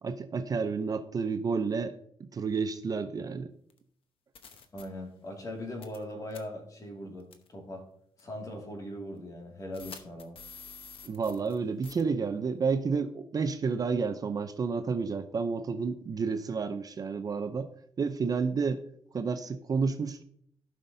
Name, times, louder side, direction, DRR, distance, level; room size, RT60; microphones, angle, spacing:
voice 1, 0.0-1.9 2.3-3.5 11.0-17.7 18.0-18.8 19.1-20.2, right 5 dB, 35° right, 8 dB, 0.5 m, -30 dB
sound 1, 3.7-3.8 4.3-4.8 5.8-6.0 6.3-6.4 7.3-7.5 8.2-8.3 9.7-11.6 11.8-12.0, left 6 dB, 60° left, 1.0 m, -47 dB
voice 2, 4.7-7.9 8.2-10.4, left 1 dB, 35° left, 1 dB, 2.2 m, -40 dB
15.5 x 5.6 x 2.7 m, 0.67 s
cardioid pair, 135°, 10 cm